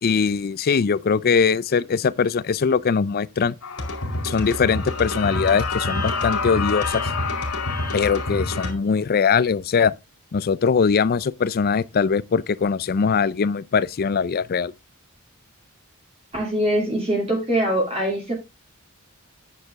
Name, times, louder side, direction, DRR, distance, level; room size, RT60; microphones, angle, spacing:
voice 1, 0.0-3.5 4.2-7.1 7.9-9.9 10.3-14.7, left 6 dB, 45° left, 0.4 m, -21 dB
sound 1, 3.6-8.7, left 3 dB, 80° left, 2.3 m, -26 dB
voice 2, 16.3-18.3, right 1 dB, 30° right, 2.8 m, -23 dB
9.6 x 6.7 x 3.5 m
head